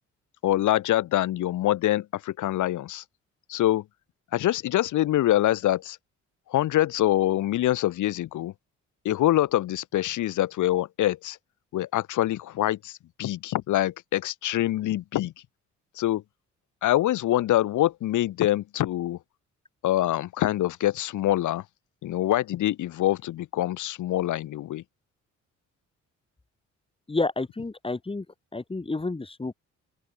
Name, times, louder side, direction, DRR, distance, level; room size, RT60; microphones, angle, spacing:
voice 1, 0.4-3.0 3.5-3.8 4.3-6.0 6.5-8.5 9.0-11.4 11.7-15.3 16.0-16.2 16.8-19.2 19.8-21.6 22.0-24.8, left 14 dB, 80° left, 2.6 m, -25 dB
voice 2, 27.1-28.3 28.5-29.5, left 3 dB, 20° left, 2.8 m, -30 dB
open air
cardioid pair, 90°, 30 cm